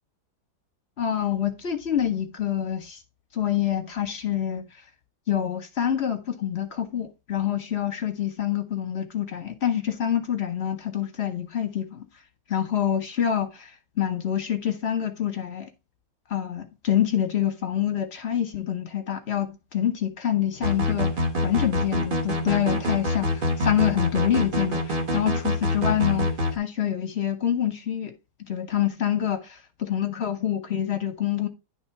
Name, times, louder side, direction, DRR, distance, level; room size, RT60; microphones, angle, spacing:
voice 1, 1.0-3.0 3.3-4.6 5.3-12.0 12.5-13.7 14.0-15.7 16.3-21.1 21.4-28.1 28.5-29.4 29.8-31.5, left 10 dB, 45° left, 1.0 m, -26 dB
sound 1, 20.6-26.5, left 1 dB, 35° right, 1.1 m, -25 dB
10.5 x 3.6 x 4.5 m
omnidirectional pair, 2.0 m